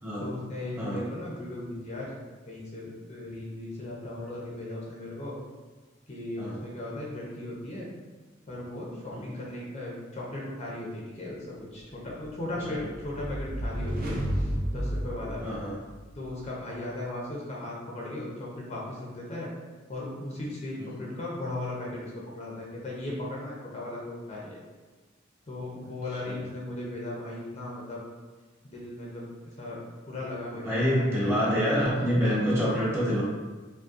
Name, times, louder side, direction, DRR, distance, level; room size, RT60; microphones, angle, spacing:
voice 1, 0.2-2.2 2.5-5.4 6.1-7.9 8.5-15.4 16.2-19.5 19.9-24.6 25.5-28.0 28.6-29.3 29.6-29.8 30.1-31.5, left 1 dB, 35° left, -4 dB, 0.6 m, -37 dB
sound 1, 12.2-16.1, equal, 45° right, 0.5 m, -32 dB
voice 2, 15.4-15.7 20.8-20.9 26.2-26.5 30.6-33.2, equal, 15° right, -6 dB, 0.9 m, -26 dB
5.0 x 2.2 x 2.5 m, 1.3 s
head